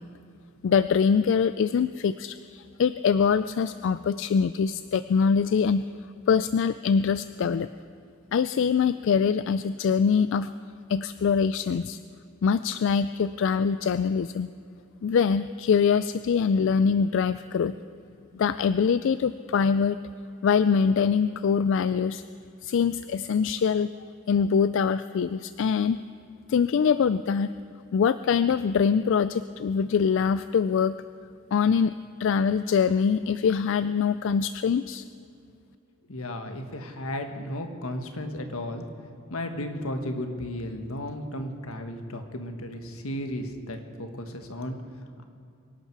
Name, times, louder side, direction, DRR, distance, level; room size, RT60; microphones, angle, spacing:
voice 1, 0.6-5.8 6.3-7.7 8.3-10.5 10.9-12.0 12.4-14.5 15.0-17.8 18.3-20.0 20.4-22.2 22.6-23.9 24.3-26.0 26.5-27.5 27.9-31.0 31.5-31.9 32.2-35.0, left 6 dB, 60° left, 14 dB, 0.3 m, -23 dB
voice 2, 36.1-38.9 39.3-44.8, left 1 dB, 80° left, 6 dB, 1.6 m, -34 dB
24.5 x 11.5 x 4.7 m, 2.5 s
head